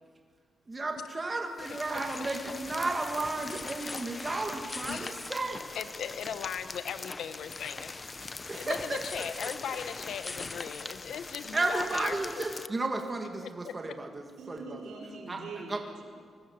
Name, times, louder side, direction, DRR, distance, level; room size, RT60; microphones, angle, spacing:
voice 1, 0.7-5.6 8.5-9.8 11.5-14.9 15.3-15.8, right 2 dB, 20° right, 3 dB, 1.8 m, -34 dB
sound 1, 1.6-12.7, left 3 dB, 25° left, 0.7 m, -41 dB
voice 2, 5.7-8.0 8.5-12.4, left 8 dB, 80° left, 11 dB, 1.2 m, -38 dB
voice 3, 14.4-16.0, right 3 dB, 80° right, 0 dB, 5.3 m, -43 dB
29.0 x 21.0 x 7.1 m, 2.1 s
wide cardioid pair, 175°, 0 cm